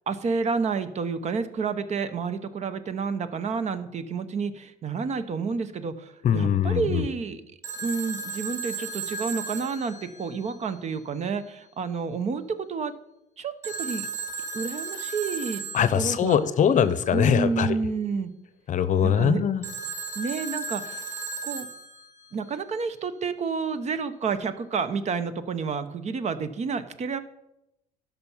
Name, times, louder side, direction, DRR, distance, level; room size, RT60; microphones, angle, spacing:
voice 1, 0.1-7.4 7.8-12.4 12.7-12.9 13.4-14.1 14.5-15.6 15.9-16.4 17.1-18.3 19.0-19.4 20.2-21.0 21.4-21.7 22.3-27.2, right 5 dB, 40° right, 12 dB, 0.7 m, -29 dB
voice 2, 6.2-7.0 15.7-17.7 18.7-19.6, left 8 dB, 45° left, 14 dB, 0.7 m, -22 dB
Telephone, 7.6-10.7 13.6-16.2 19.6-22.3, right 4 dB, 15° right, 1.7 m, -35 dB
11.5 x 5.6 x 5.6 m, 0.88 s
cardioid pair, 110°, 17 cm